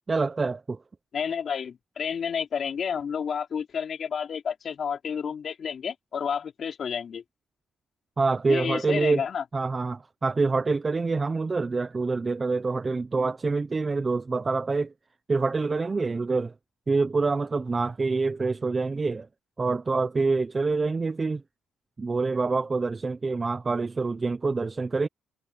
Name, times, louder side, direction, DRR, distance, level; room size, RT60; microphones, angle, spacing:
voice 1, 0.1-0.8 8.2-9.2 9.5-14.9 15.3-16.5 16.9-19.3 19.6-21.4 22.0-25.1, right 4 dB, 30° right, 0.9 m, -26 dB
voice 2, 1.1-7.2 8.5-9.4, left 7 dB, 50° left, 4.9 m, -30 dB
cardioid pair, 90°, 0 cm